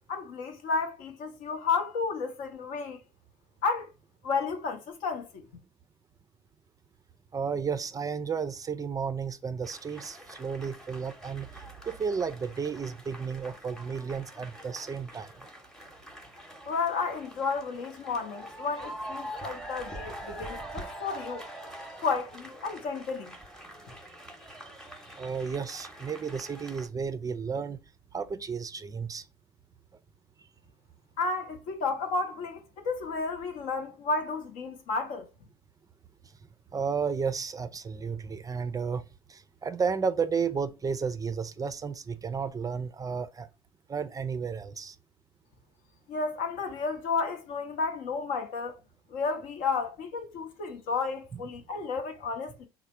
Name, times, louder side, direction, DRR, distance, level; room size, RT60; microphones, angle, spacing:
voice 1, 0.1-3.0 3.6-3.9 4.2-5.3 16.6-21.4 22.0-23.3 31.2-35.3 46.1-48.8 49.1-52.7, left 4 dB, 70° left, 0.8 m, -32 dB
voice 2, 7.3-11.5 11.9-15.3 25.2-27.8 28.1-29.2 36.7-39.0 39.3-43.5 43.9-45.0, right 6 dB, 25° right, 0.4 m, -32 dB
sound 1, 9.6-26.9, equal, 5° left, 0.8 m, -44 dB
3.2 x 2.1 x 4.2 m
hypercardioid pair, 65°, 14 cm